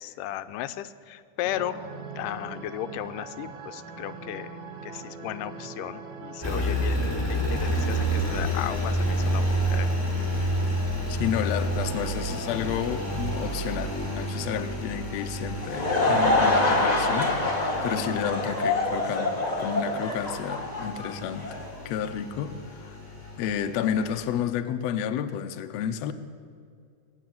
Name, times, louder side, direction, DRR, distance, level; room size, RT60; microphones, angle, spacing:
voice 1, 0.0-1.8 2.1-4.6 4.8-9.9 17.7-17.9, left 13 dB, 90° left, 12 dB, 2.2 m, -35 dB
sound 1, 1.4-6.8, right 4 dB, 75° right, 3.0 m, -41 dB
Engine, 6.4-24.4, right 1 dB, 5° left, 3.8 m, -30 dB
voice 2, 11.1-23.0 23.4-26.1, left 9 dB, 75° left, 8 dB, 1.6 m, -31 dB
Laughter / Crowd, 15.4-21.7, left 2 dB, 40° left, 0.6 m, -25 dB
20.5 x 7.2 x 9.3 m, 2.4 s
omnidirectional pair, 3.7 m